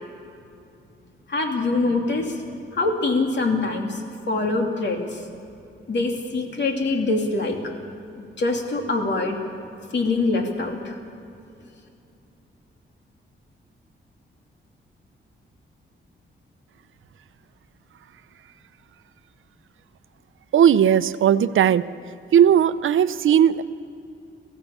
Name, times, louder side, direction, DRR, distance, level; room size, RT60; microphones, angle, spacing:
voice 1, 1.3-2.4 2.7-4.0 4.3-5.2 5.9-7.6 8.2-9.4 9.9-10.9, left 3 dB, 60° left, 2 dB, 2.9 m, -24 dB
voice 2, 20.5-21.9 22.3-23.6, right 9 dB, 75° right, 14 dB, 0.7 m, -17 dB
24.5 x 15.5 x 7.2 m, 2.7 s
wide cardioid pair, 120°, 21 cm